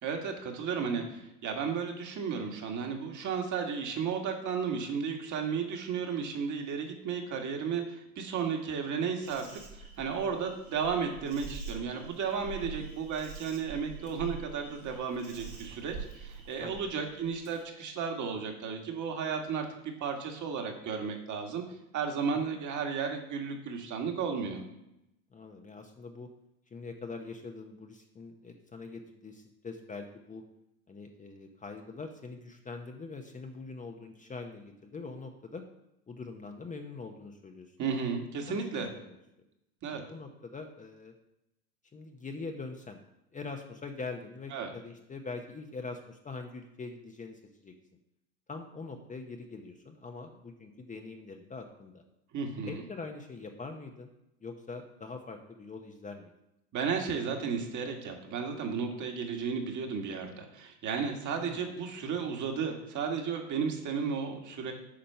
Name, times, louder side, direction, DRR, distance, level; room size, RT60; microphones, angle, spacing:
voice 1, 0.0-21.6 21.9-24.6 37.8-38.9 39.8-40.0 44.5-44.7 52.3-52.8 56.7-64.7, right 6 dB, 40° right, 3 dB, 2.0 m, -34 dB
voice 2, 0.8-1.2 16.6-16.9 22.5-22.6 25.3-26.3 26.7-30.4 30.9-35.6 36.1-37.7 38.5-39.2 39.9-41.1 41.9-43.0 43.3-47.7 48.5-52.0 52.7-54.1 54.4-56.3 61.4-61.7, left 4 dB, 15° left, 4 dB, 0.9 m, -43 dB
Insect, 9.2-17.6, right 5 dB, 85° right, 3.8 m, -45 dB
8.7 x 5.1 x 5.7 m, 0.86 s
hypercardioid pair, 100°, 45 cm